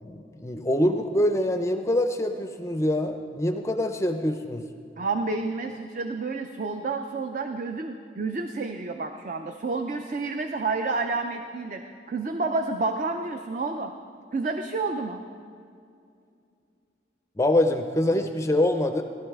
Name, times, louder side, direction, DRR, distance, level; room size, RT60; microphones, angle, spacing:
voice 1, 0.0-4.6 17.4-19.0, left 1 dB, 15° left, 6 dB, 0.4 m, -24 dB
voice 2, 5.0-11.8 12.1-13.9 14.3-15.2, right 3 dB, 45° right, 6 dB, 0.4 m, -29 dB
17.0 x 11.5 x 3.5 m, 2.5 s
head